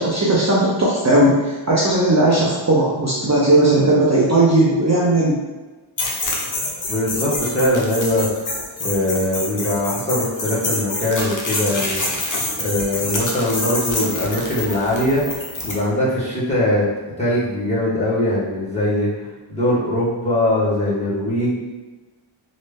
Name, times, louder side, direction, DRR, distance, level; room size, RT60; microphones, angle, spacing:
voice 1, 0.0-5.4, right 1 dB, 35° right, -6 dB, 0.6 m, -17 dB
sound 1, 6.0-15.8, left 2 dB, 40° left, 0.7 m, -26 dB
voice 2, 6.9-8.3 8.8-12.0 12.6-15.2 15.6-16.9 17.2-19.1 19.5-21.5, left 1 dB, 15° left, -9 dB, 1.3 m, -21 dB
3.1 x 2.6 x 3.4 m, 1.2 s
wide cardioid pair, 85°, 49 cm